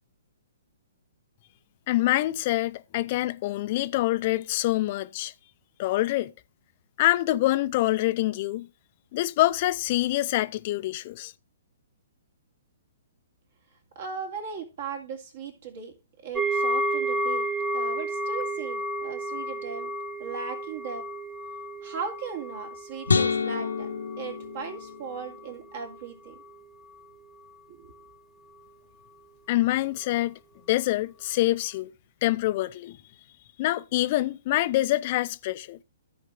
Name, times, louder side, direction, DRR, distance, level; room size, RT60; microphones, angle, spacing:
voice 1, 1.9-5.3 5.8-6.3 7.0-8.7 9.1-11.3 29.5-30.4 30.7-31.9 32.2-33.0 33.6-35.8, left 16 dB, 40° left, 0.5 m, -25 dB
voice 2, 13.9-15.9 16.2-17.5 17.7-19.9 20.2-21.0 21.8-23.9 24.2-26.4 27.7-27.9, right 6 dB, 55° right, 2.7 m, -37 dB
sound 1, 16.3-25.5 25.7-26.0 26.5-26.6, right 1 dB, 5° right, 0.9 m, -32 dB
sound 2, 23.1-25.4, left 5 dB, 75° left, 0.9 m, -28 dB
14.0 x 4.7 x 3.6 m
figure-of-eight pair, 120°, 0 cm